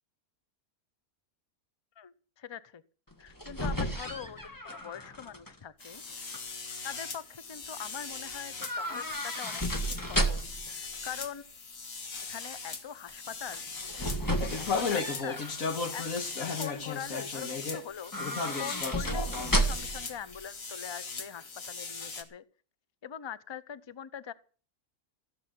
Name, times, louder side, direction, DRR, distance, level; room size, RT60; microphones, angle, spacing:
voice 1, 2.0-2.8 3.2-6.0 6.8-11.4 12.3-13.6 14.0-15.4 15.9-16.1 16.4-18.1 18.6-22.4 23.0-24.3, left 8 dB, 30° left, 16 dB, 0.5 m, -43 dB
sound 1, 3.1-5.5 5.8-6.4 8.6-10.7 13.5-15.6 16.0-16.5 18.0-20.1 20.3-20.4, right 1 dB, 15° left, 1.6 m, -33 dB
sound 2, 5.8-22.2, left 4 dB, 65° left, 2.1 m, -37 dB
16.5 x 7.6 x 9.4 m, 0.41 s
omnidirectional pair, 1.5 m